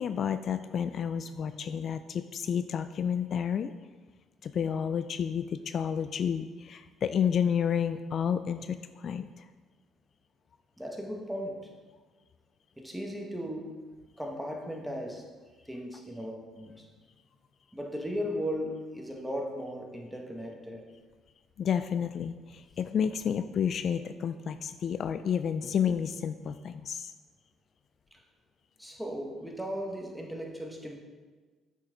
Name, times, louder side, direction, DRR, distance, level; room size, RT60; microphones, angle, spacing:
voice 1, 0.0-3.7 4.4-9.4 21.6-27.1, left 8 dB, 55° left, 11 dB, 0.3 m, -30 dB
voice 2, 10.8-11.7 12.8-13.8 14.2-15.3 15.6-16.9 17.7-20.8 28.1-28.2 28.8-31.0, equal, 5° right, 1 dB, 1.6 m, -37 dB
8.3 x 6.2 x 3.9 m, 1.4 s
supercardioid pair, 70°, 0 cm